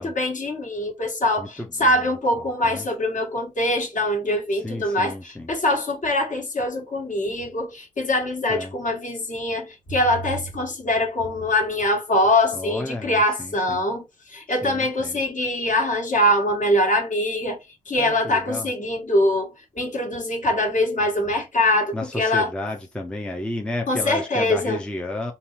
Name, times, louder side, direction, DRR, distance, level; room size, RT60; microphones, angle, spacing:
voice 1, 0.0-17.6 17.9-19.5 19.7-22.5 23.9-24.8, left 1 dB, 40° left, 1.5 m, -23 dB
voice 2, 1.4-2.0 2.6-2.9 4.6-5.5 8.5-8.7 12.5-13.8 14.6-15.2 18.0-18.7 21.9-25.3, left 2 dB, 5° left, 0.8 m, -32 dB
4.0 x 2.8 x 3.0 m
figure-of-eight pair, 40°, 20 cm